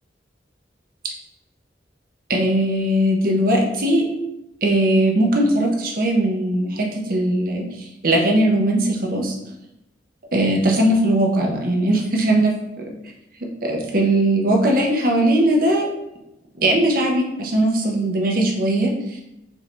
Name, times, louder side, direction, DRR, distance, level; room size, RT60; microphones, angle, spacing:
voice 1, 2.3-4.0 4.6-7.6 8.0-9.3 10.3-12.5 13.6-15.9 16.6-18.9, right 1 dB, 50° right, 0 dB, 0.7 m, -19 dB
4.5 x 2.6 x 3.3 m, 0.90 s
head